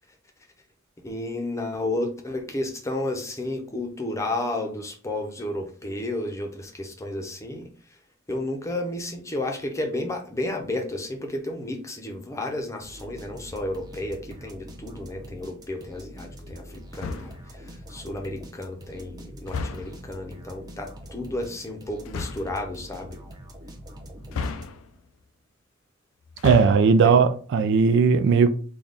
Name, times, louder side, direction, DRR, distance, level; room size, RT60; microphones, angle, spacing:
voice 1, 1.0-7.7 8.3-23.2 26.8-27.2, left 1 dB, 15° left, 0.6 m, -32 dB
sound 1, 12.8-25.0, equal, 20° right, 0.7 m, -44 dB
sound 2, 16.9-17.5 19.5-20.1 22.0-22.6 24.3-25.1 26.3-27.0, left 4 dB, 90° left, 0.4 m, -33 dB
voice 2, 26.4-28.5, right 5 dB, 60° right, 0.3 m, -18 dB
4.0 x 2.3 x 3.4 m
head